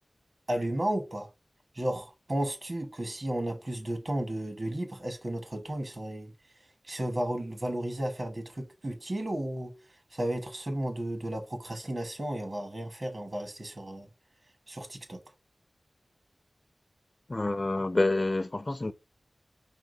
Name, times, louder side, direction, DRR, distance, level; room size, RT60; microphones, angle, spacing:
voice 1, 0.5-1.3 1.7-6.3 6.9-9.7 10.1-14.1 14.7-15.2, right 1 dB, 50° right, 1.2 m, -33 dB
voice 2, 17.3-18.9, left 2 dB, 35° left, 0.4 m, -28 dB
4.8 x 3.1 x 2.6 m
cardioid pair, 45°, 0 cm